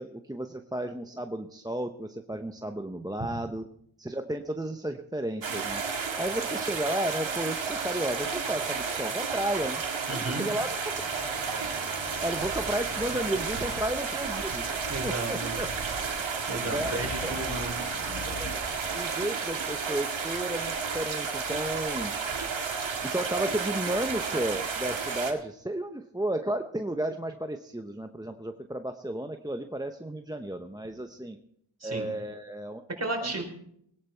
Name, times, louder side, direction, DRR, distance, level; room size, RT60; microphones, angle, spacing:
voice 1, 0.0-3.6 4.0-5.8 6.2-9.8 10.1-10.8 12.2-15.7 16.7-17.4 18.3-22.1 23.0-31.4 31.8-32.8 33.2-33.3, right 1 dB, 10° right, 6 dB, 0.8 m, -33 dB
sound 1, 5.4-25.3, right 5 dB, 65° right, 2.2 m, -32 dB
voice 2, 10.1-10.5 14.9-15.5 16.5-17.8 31.8-32.1 33.0-33.4, right 2 dB, 30° right, 3 dB, 4.1 m, -33 dB
sound 2, 10.8-18.6, left 3 dB, 55° left, 1.8 m, -45 dB
19.5 x 10.5 x 4.5 m, 0.71 s
cardioid pair, 60°, 49 cm